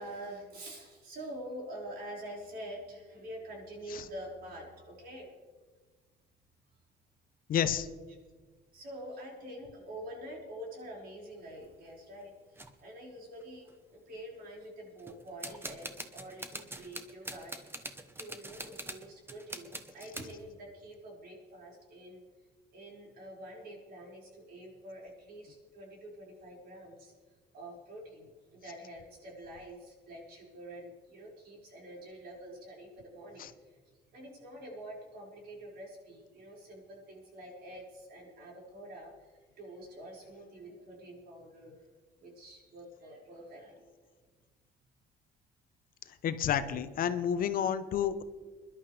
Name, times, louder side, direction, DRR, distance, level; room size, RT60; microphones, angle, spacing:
voice 1, 0.0-5.3 8.7-22.2 22.7-27.2 27.5-33.8 34.1-41.8 42.2-43.9, right 1 dB, 70° right, -2 dB, 5.5 m, -46 dB
voice 2, 7.5-7.9 33.4-33.5 46.2-48.2, left 9 dB, 55° left, 11 dB, 0.9 m, -30 dB
sound 1, 11.4-11.8 12.6-12.7 13.4-13.5 13.7-14.2 15.0-20.3, right 2 dB, 15° right, 1.1 m, -44 dB
23.5 x 11.5 x 3.4 m, 1.4 s
cardioid pair, 110°, 17 cm